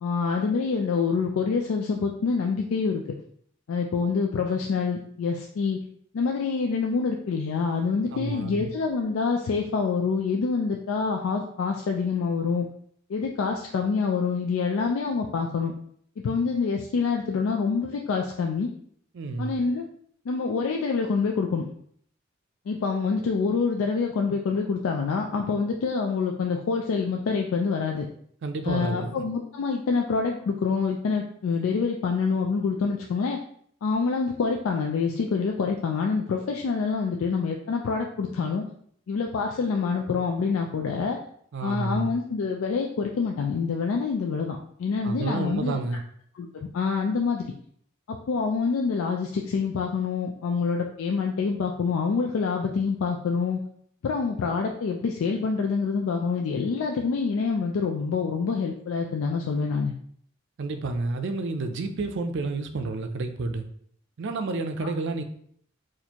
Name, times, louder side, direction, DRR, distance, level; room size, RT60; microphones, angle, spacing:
voice 1, 0.0-3.0 3.7-5.8 6.1-12.7 13.1-15.7 16.2-18.7 19.4-19.8 20.3-21.7 22.7-28.1 28.7-33.4 33.8-38.6 39.1-41.2 41.6-45.8 46.4-47.5 48.1-53.6 54.0-59.9 64.8-64.9, left 5 dB, 80° left, 2 dB, 0.4 m, -26 dB
voice 2, 8.1-8.7 19.1-19.5 28.4-29.2 41.5-42.1 45.0-46.0 60.6-63.7 64.2-65.2, right 3 dB, 65° right, 7 dB, 0.4 m, -30 dB
4.2 x 2.5 x 2.9 m, 0.64 s
head